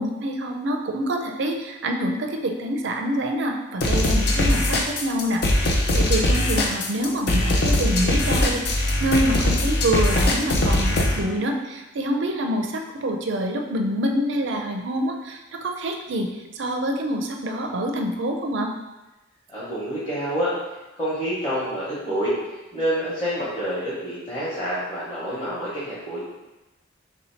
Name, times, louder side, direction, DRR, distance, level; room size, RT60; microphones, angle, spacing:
voice 1, 0.0-18.7, right 1 dB, 60° right, 3 dB, 0.4 m, -26 dB
sound 1, 3.8-11.2, left 1 dB, 50° left, 0.5 m, -21 dB
voice 2, 19.5-20.5 21.0-22.3 22.7-26.2, equal, 20° left, -11 dB, 1.0 m, -27 dB
3.1 x 2.8 x 4.3 m, 1.0 s
head